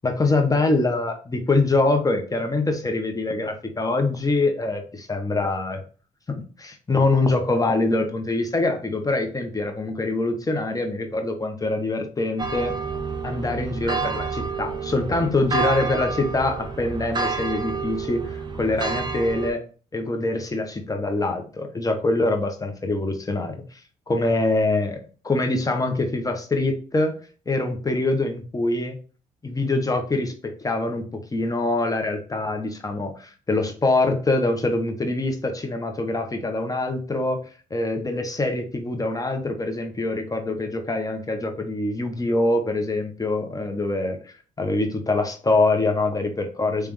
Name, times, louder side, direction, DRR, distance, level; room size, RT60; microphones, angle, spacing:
voice 1, 0.0-5.8 6.3-12.7 13.2-19.6 19.9-23.6 24.1-25.0 25.2-27.2 27.5-29.0 29.4-37.4 37.7-44.2 44.6-46.9, left 2 dB, 20° left, 5 dB, 1.1 m, -24 dB
sound 1, 12.4-19.5, right 4 dB, 25° right, 0.8 m, -29 dB
3.5 x 3.3 x 3.2 m, 0.37 s
supercardioid pair, 65°, 16 cm